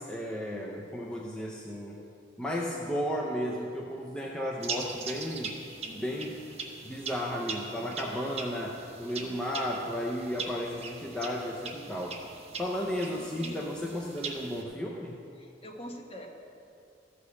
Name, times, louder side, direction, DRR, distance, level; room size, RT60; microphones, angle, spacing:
voice 1, 0.0-2.0 2.4-5.6 5.9-6.3 6.8-12.2 12.6-15.2, equal, 5° left, -3 dB, 0.6 m, -34 dB
sound 1, 4.6-14.6, right 4 dB, 35° right, 1.0 m, -41 dB
voice 2, 5.8-6.3 7.8-8.6 9.2-9.4 12.6-13.9 15.4-16.3, equal, 35° left, 1 dB, 1.3 m, -47 dB
14.0 x 5.0 x 7.0 m, 2.5 s
head